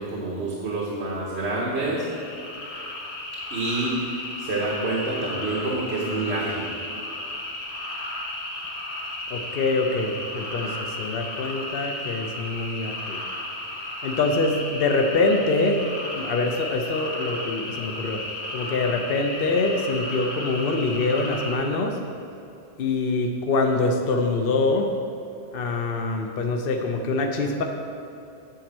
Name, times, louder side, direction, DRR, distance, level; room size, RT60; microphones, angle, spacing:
voice 1, 0.0-2.1 3.5-6.7, right 2 dB, 85° right, -5 dB, 1.4 m, -27 dB
sound 1, 1.7-21.5, left 1 dB, 85° left, 1.8 m, -34 dB
voice 2, 9.3-13.2 14.0-15.8 16.1-18.2 18.5-22.0 22.8-24.9 25.5-27.6, left 3 dB, 65° left, 3 dB, 0.9 m, -24 dB
9.2 x 4.3 x 7.3 m, 2.7 s
omnidirectional pair, 1.1 m